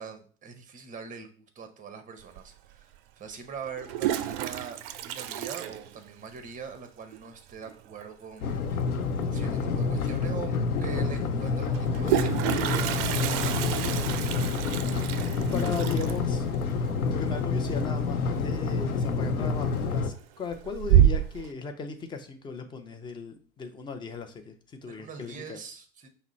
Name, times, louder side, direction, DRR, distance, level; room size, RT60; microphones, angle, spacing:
voice 1, 0.0-14.7 24.8-26.1, right 6 dB, 20° right, 7 dB, 0.8 m, -43 dB
Toilet flush, 2.4-2.5 3.7-6.5 6.7-6.8 7.1-7.2 7.5-7.9 9.6-9.7 10.1-10.2 11.7-18.4 18.7-19.1 19.6-20.1 20.5-21.5, right 11 dB, 45° right, 0.4 m, -28 dB
sound 1, 8.4-20.1, left 4 dB, 80° left, 0.7 m, -28 dB
voice 2, 15.4-16.5 17.1-24.5 24.8-25.6, left 4 dB, 10° left, 6 dB, 0.4 m, -37 dB
5.8 x 2.1 x 4.1 m, 0.41 s
figure-of-eight pair, 85°, 42 cm